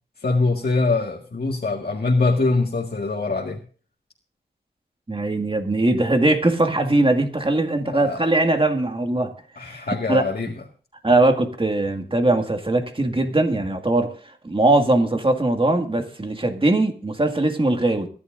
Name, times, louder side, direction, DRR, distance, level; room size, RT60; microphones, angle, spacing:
voice 1, 0.2-3.6 7.8-8.2 9.6-10.5, left 3 dB, 60° left, -2 dB, 1.9 m, -23 dB
voice 2, 5.1-9.3 9.7-10.2 11.0-18.1, right 2 dB, 30° right, 5 dB, 2.0 m, -21 dB
24.0 x 11.5 x 2.6 m, 0.42 s
wide cardioid pair, 65°, 18 cm